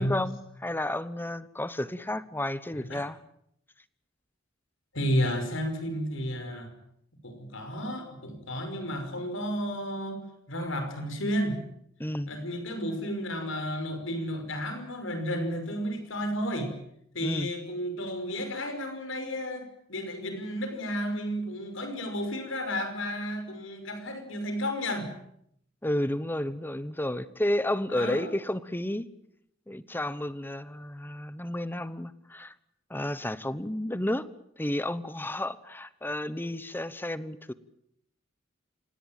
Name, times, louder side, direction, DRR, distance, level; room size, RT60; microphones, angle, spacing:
voice 1, 0.0-3.2 12.0-12.3 17.2-17.5 25.8-29.1 29.7-32.5 32.9-34.3 34.6-37.5, left 1 dB, 10° left, 16 dB, 1.0 m, -31 dB
voice 2, 4.9-6.7 7.2-11.6 12.3-16.7 17.1-25.1 27.9-28.3, equal, 80° left, 7 dB, 5.8 m, -32 dB
26.5 x 18.5 x 9.1 m, 0.73 s
head